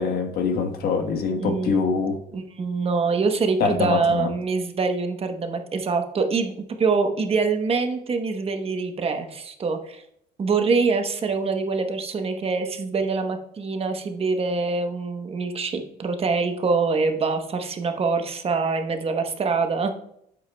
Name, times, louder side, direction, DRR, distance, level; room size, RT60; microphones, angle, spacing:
voice 1, 0.0-2.2 3.6-4.3, left 5 dB, 70° left, 5 dB, 1.3 m, -24 dB
voice 2, 1.4-1.8 2.3-6.5 6.8-10.0 10.4-19.9, right 4 dB, 35° right, 6 dB, 1.0 m, -24 dB
8.8 x 7.6 x 2.2 m, 0.72 s
cardioid pair, 110°, 17 cm